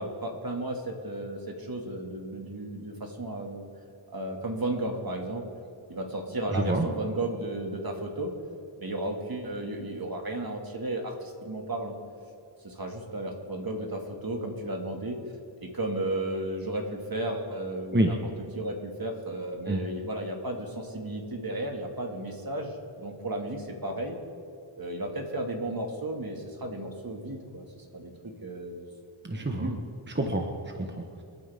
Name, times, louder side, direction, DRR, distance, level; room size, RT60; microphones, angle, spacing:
voice 1, 0.0-3.7 4.1-5.5 5.9-8.3 8.8-12.0 12.6-15.2 15.6-18.1 18.5-24.2 24.8-28.1 28.4-28.8 29.4-29.8, right 1 dB, 45° right, 2 dB, 2.3 m, -34 dB
voice 2, 6.5-6.9 17.9-18.1 19.6-19.8 29.2-29.7 30.1-31.2, right 1 dB, 20° right, 2 dB, 1.3 m, -28 dB
28.5 x 9.6 x 3.7 m, 2.5 s
cardioid pair, 55°, 49 cm